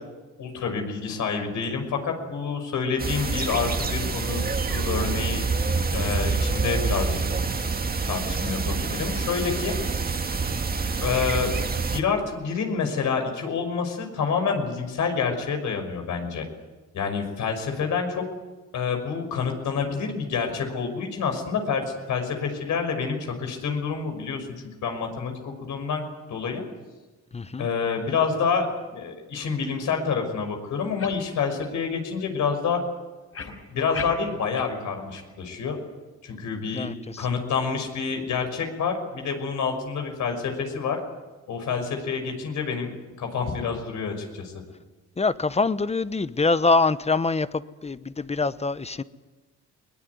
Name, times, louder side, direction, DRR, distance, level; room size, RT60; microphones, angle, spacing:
voice 1, 0.4-5.4 5.9-7.2 8.1-9.7 11.0-11.5 11.9-16.4 16.9-18.2 18.7-24.5 24.8-26.0 26.3-26.6 27.6-32.8 33.4-35.8 36.2-36.9 37.2-41.0 41.5-42.9 43.2-44.5, left 5 dB, 75° left, 5 dB, 5.8 m, -28 dB
sound 1, 3.0-12.0, right 4 dB, 30° right, 1.8 m, -27 dB
voice 2, 27.3-27.7 36.7-37.3 45.2-49.0, left 3 dB, 20° left, 14 dB, 1.0 m, -24 dB
sound 2, 31.0-31.2 31.6-31.7 32.2-32.3 33.3-34.7 35.1-35.2 35.7-35.8, left 6 dB, 50° left, 4.5 m, -36 dB
22.0 x 19.5 x 9.6 m, 1.2 s
cardioid pair, 90°, 30 cm